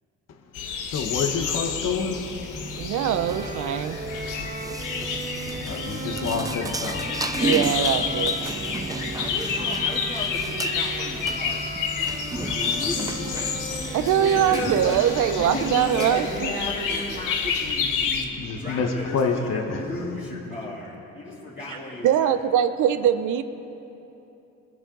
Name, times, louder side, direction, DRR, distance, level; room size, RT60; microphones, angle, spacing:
sound 1, 0.5-18.2, left 6 dB, 90° left, 1.1 m, -30 dB
voice 1, 0.8-3.0 4.0-7.5 8.6-9.0 18.4-19.8, left 5 dB, 60° left, 4 dB, 1.2 m, -30 dB
sound 2, 2.5-16.4, right 3 dB, 10° right, 0.4 m, -34 dB
voice 2, 2.8-4.0 7.4-8.4 13.9-16.5 22.0-23.4, right 9 dB, 75° right, 11 dB, 0.7 m, -22 dB
Bowed string instrument, 2.9-17.4, right 2 dB, 30° right, 2.1 m, -38 dB
voice 3, 8.8-13.1 13.3-13.6 13.8-22.4, left 2 dB, 30° left, -9 dB, 3.0 m, -35 dB
21.5 x 11.0 x 3.9 m, 3.0 s
cardioid pair, 90°, 30 cm